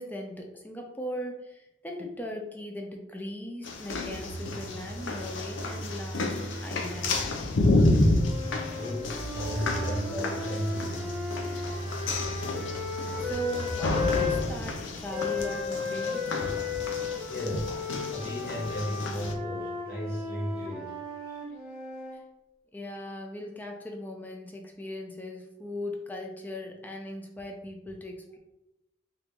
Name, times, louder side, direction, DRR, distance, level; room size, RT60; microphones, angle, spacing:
voice 1, 0.0-6.4 6.6-7.2 13.2-16.3 22.1-22.2 22.7-28.4, equal, 10° left, 2 dB, 0.4 m, -38 dB
sound 1, 3.6-19.3, left 2 dB, 90° left, 0.5 m, -30 dB
Telephone, 3.8-7.8 8.9-14.6, right 2 dB, 80° right, 0.4 m, -39 dB
sound 2, 8.1-14.4 15.1-22.2, left 5 dB, 5° right, 0.8 m, -35 dB
voice 2, 8.7-11.2 17.3-17.8 18.1-21.0 21.2-21.4, equal, 55° left, -6 dB, 1.2 m, -35 dB
3.4 x 2.5 x 2.9 m, 0.96 s
head